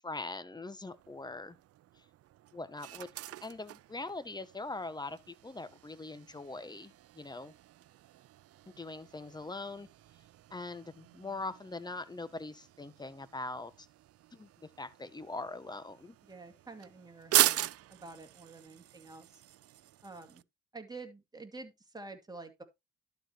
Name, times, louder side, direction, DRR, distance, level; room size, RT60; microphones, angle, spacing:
voice 1, 0.0-1.6 2.0-2.1 2.5-3.1 3.4-7.5 8.8-9.9 10.5-13.9 14.3-14.5 14.8-16.2, left 2 dB, 15° left, 1.1 m, -42 dB
sound 1, 0.8-20.4, right 14 dB, 55° right, 0.4 m, -39 dB
voice 2, 16.2-19.4 20.0-20.4 20.7-22.6, right 3 dB, 15° right, 2.3 m, -48 dB
12.0 x 4.6 x 4.6 m
cardioid pair, 90°, 30 cm